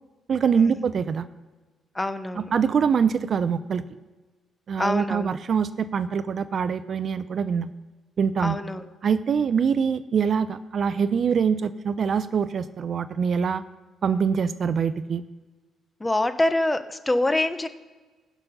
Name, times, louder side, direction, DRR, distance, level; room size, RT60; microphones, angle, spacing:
voice 1, 0.3-1.3 2.4-3.8 4.7-7.7 8.2-8.6 9.0-13.6 14.0-15.2, right 6 dB, 50° right, 14 dB, 0.5 m, -24 dB
voice 2, 1.9-2.5 4.8-5.4 8.4-8.8 16.0-17.7, left 2 dB, 15° left, 11 dB, 0.9 m, -25 dB
15.5 x 6.0 x 5.4 m, 1.3 s
cardioid pair, 90°, 0 cm